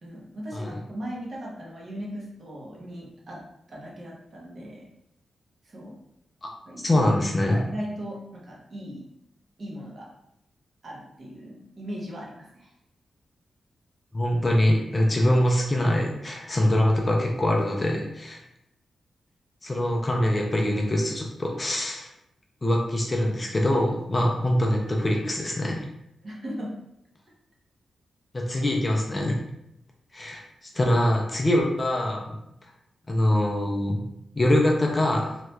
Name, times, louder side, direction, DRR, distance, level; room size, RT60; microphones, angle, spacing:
voice 1, 0.0-3.4 3.7-4.9 5.6-5.9 6.7-7.0 7.4-9.1 9.6-10.1 10.8-12.7 26.2-26.8, equal, 40° right, -3 dB, 0.8 m, -38 dB
voice 2, 6.8-7.6 14.1-18.4 19.6-22.1 22.6-25.8 28.3-29.4 30.1-30.4 30.7-32.4 33.1-34.0 34.3-35.4, left 1 dB, 20° left, -1 dB, 0.4 m, -23 dB
2.8 x 2.3 x 3.2 m, 0.82 s
wide cardioid pair, 150°, 0 cm